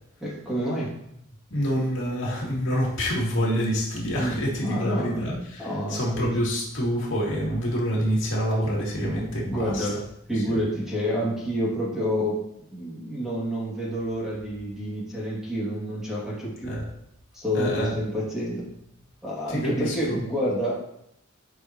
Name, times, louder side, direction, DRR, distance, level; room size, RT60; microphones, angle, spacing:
voice 1, 0.2-0.9 4.2-6.4 8.7-10.0 10.3-12.4 12.7-16.7 17.3-18.7 19.2-20.7, equal, ahead, -7 dB, 2.4 m, -29 dB
voice 2, 1.5-9.9 16.6-16.8 17.5-17.9 19.5-20.2, equal, 65° left, -5 dB, 2.5 m, -27 dB
11.0 x 5.5 x 3.1 m, 0.77 s
head